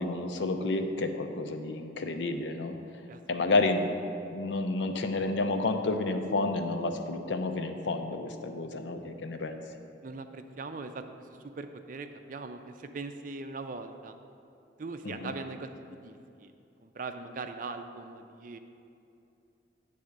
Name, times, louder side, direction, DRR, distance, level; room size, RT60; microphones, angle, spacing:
voice 1, 0.0-2.8 3.3-3.9 4.3-9.6 15.0-15.3, left 2 dB, 75° left, 6 dB, 0.6 m, -30 dB
voice 2, 3.1-3.5 10.0-11.3 11.6-14.1 14.8-16.5 16.8-18.6, right 3 dB, 45° right, 7 dB, 0.4 m, -41 dB
9.5 x 3.5 x 6.5 m, 2.7 s
head